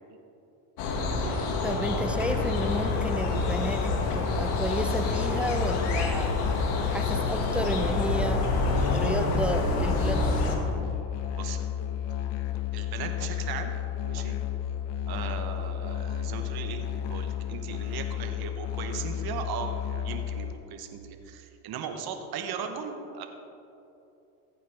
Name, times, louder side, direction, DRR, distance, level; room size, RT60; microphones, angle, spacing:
sound 1, 0.8-10.6, left 2 dB, 75° left, 1.7 m, -28 dB
voice 1, 1.6-6.3 6.9-8.4 8.9-10.6, equal, ahead, 6 dB, 0.7 m, -32 dB
Musical instrument, 2.1-20.5, left 9 dB, 60° left, 1.0 m, -32 dB
voice 2, 12.7-13.7 14.0-14.4 15.1-19.7 20.0-23.3, right 7 dB, 50° right, 5 dB, 1.2 m, -37 dB
15.0 x 8.5 x 3.6 m, 2.9 s
supercardioid pair, 85°, 49 cm